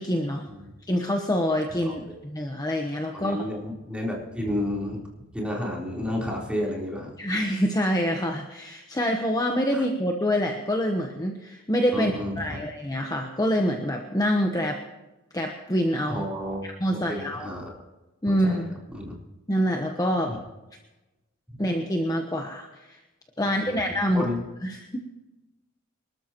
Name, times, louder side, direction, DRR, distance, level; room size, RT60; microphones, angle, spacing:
voice 1, 0.0-0.5 0.9-3.5 7.2-14.8 15.3-16.3 16.6-17.5 18.2-18.8 19.5-20.3 21.6-23.0 23.4-24.3 24.6-25.0, equal, 20° left, 2 dB, 1.1 m, -26 dB
voice 2, 3.1-5.0 5.3-7.1 9.7-9.8 11.9-12.6 16.1-16.6 16.9-17.8 18.3-18.6 18.9-19.1 20.3-20.4 23.4-23.8 24.1-24.4, left 1 dB, 5° right, -4 dB, 3.9 m, -31 dB
25.5 x 13.0 x 3.0 m, 1.1 s
head